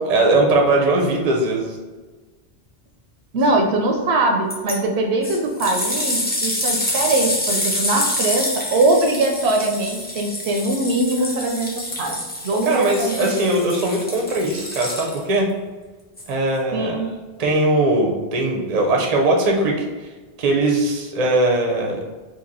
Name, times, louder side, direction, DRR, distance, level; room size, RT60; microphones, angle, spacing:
voice 1, 0.0-1.8 12.7-15.5 16.3-17.1 17.4-19.8 20.4-22.0, right 2 dB, 45° right, 0 dB, 0.6 m, -20 dB
voice 2, 3.3-13.3 16.7-17.1, right 2 dB, 80° right, 2 dB, 0.8 m, -21 dB
sound 1, 4.5-4.7 5.2-15.4 16.2-16.3, left 1 dB, 10° left, 0.5 m, -27 dB
2.9 x 2.8 x 3.8 m, 1.3 s
omnidirectional pair, 1.1 m